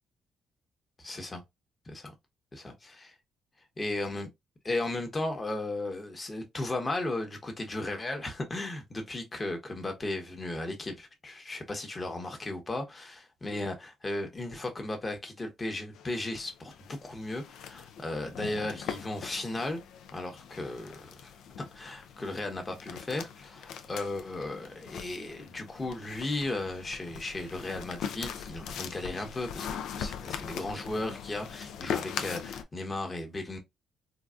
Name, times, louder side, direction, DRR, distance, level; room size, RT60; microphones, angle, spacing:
voice 1, 1.0-1.4 1.9-2.1 2.5-3.1 3.8-4.3 4.6-19.8 20.1-21.3 21.7-29.7 30.0-33.6, left 2 dB, 25° left, 1.0 m, -35 dB
sound 1, 15.9-32.6, left 8 dB, 80° left, 0.4 m, -41 dB
3.8 x 2.3 x 2.4 m
cardioid pair, 90°, 0 cm